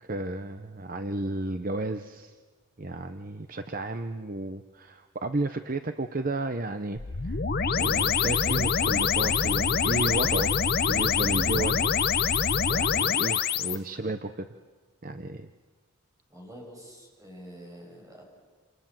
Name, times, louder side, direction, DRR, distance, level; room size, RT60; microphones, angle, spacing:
voice 1, 0.0-2.4 2.8-7.4 7.8-10.5 10.9-12.0 12.7-14.5 15.0-15.5, right 2 dB, 40° right, 8 dB, 0.8 m, -33 dB
sound 1, 7.0-13.8, left 6 dB, 45° left, 0.8 m, -25 dB
voice 2, 16.3-18.2, equal, 15° right, 0 dB, 6.9 m, -46 dB
28.5 x 28.0 x 7.5 m, 1.5 s
head